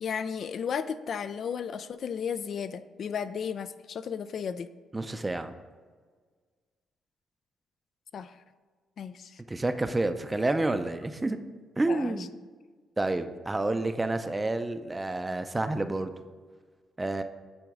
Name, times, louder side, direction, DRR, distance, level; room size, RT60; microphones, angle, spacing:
voice 1, 0.0-4.7 8.1-8.3 9.0-9.4 11.9-12.2, left 7 dB, 60° left, 12 dB, 0.3 m, -34 dB
voice 2, 4.9-5.5 9.5-11.4 11.8-12.3 13.0-16.1 17.0-17.2, right 2 dB, 15° right, 9 dB, 0.5 m, -29 dB
9.1 x 3.9 x 3.6 m, 1.5 s
cardioid pair, 90°, 0 cm